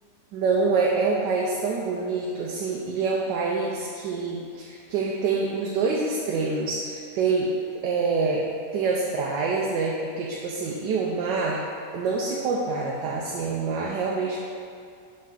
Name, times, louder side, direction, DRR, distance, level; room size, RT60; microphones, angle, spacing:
voice 1, 0.3-7.5 7.8-8.4 8.7-11.6 11.9-14.4, right 4 dB, 85° right, -2 dB, 1.3 m, -26 dB
5.5 x 5.1 x 3.9 m, 2.3 s
omnidirectional pair, 1.9 m